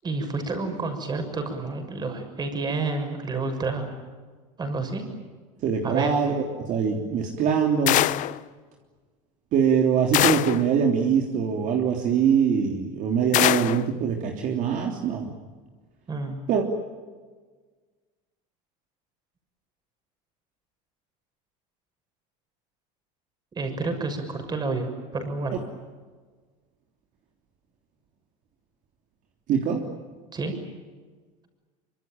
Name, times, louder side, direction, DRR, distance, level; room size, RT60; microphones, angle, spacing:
voice 1, 0.0-3.9 4.6-5.0 5.8-6.1 16.1-16.4 23.5-25.6 30.3-30.5, right 3 dB, 25° right, 6 dB, 6.6 m, -29 dB
voice 2, 5.6-8.0 9.5-15.3 16.5-16.6 29.5-29.8, right 7 dB, 50° right, 1 dB, 3.4 m, -23 dB
sound 1, 7.9-8.4 10.1-10.7 13.3-13.9, left 15 dB, 50° left, 0.8 m, -22 dB
25.0 x 24.5 x 9.1 m, 1.4 s
supercardioid pair, 120°, 17 cm